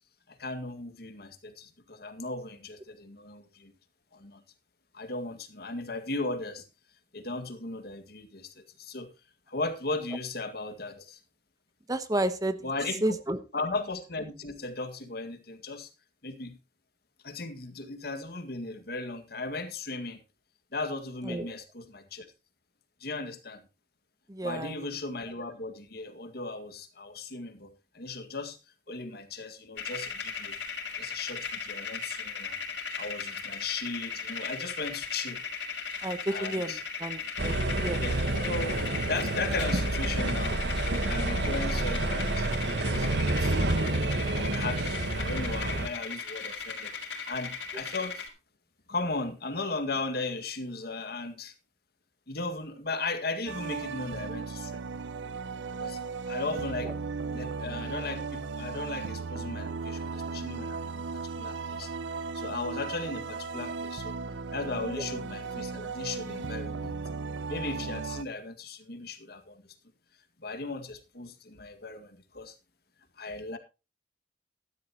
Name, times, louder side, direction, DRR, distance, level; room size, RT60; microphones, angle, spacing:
voice 1, 0.3-3.7 4.1-4.4 4.9-6.6 7.1-9.1 9.5-11.2 12.6-13.0 13.5-15.9 16.2-16.6 17.2-20.2 20.7-22.3 23.0-23.6 24.4-28.6 28.9-30.6 31.0-32.6 33.0-35.4 36.3-36.8 38.0-38.2 38.4-38.8 39.0-40.6 41.0-42.5 42.8-48.3 48.9-51.5 52.3-54.8 55.8-56.0 56.3-56.9 57.2-61.0 61.4-61.9 62.3-64.2 64.5-67.0 67.5-69.6 70.4-72.5 73.2-73.6, left 3 dB, 60° left, 8 dB, 2.0 m, -37 dB
voice 2, 11.9-12.6 13.0-13.4 21.2-21.5 24.3-24.8 36.0-38.3 56.8-56.9, right 1 dB, 20° right, 11 dB, 1.0 m, -31 dB
sound 1, 29.8-48.3, left 5 dB, 90° left, 4.3 m, -37 dB
sound 2, 37.4-45.9, right 2 dB, 70° right, 1.4 m, -29 dB
sound 3, 53.5-68.2, right 4 dB, 90° right, 0.7 m, -36 dB
14.0 x 12.0 x 3.0 m, 0.29 s
head